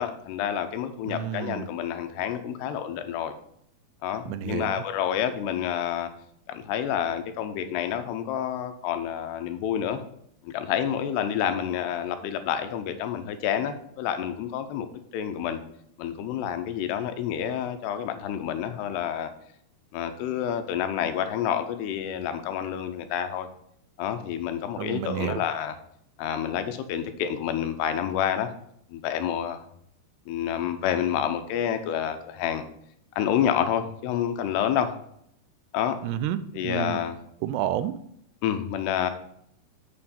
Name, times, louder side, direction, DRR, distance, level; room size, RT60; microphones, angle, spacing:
voice 1, 0.0-3.3 4.0-6.1 6.5-10.0 10.4-14.9 15.1-15.6 16.0-19.3 19.9-23.5 24.0-25.8 26.2-28.5 28.9-29.6 30.3-32.6 33.2-34.9 35.7-36.0 36.5-37.2 38.4-39.1, left 9 dB, 85° left, 9 dB, 2.8 m, -28 dB
voice 2, 1.1-1.6 4.3-4.8 24.8-25.4 36.0-37.0 37.4-38.0, right 11 dB, 90° right, 13 dB, 2.7 m, -30 dB
7.6 x 7.6 x 4.3 m, 0.70 s
omnidirectional pair, 4.7 m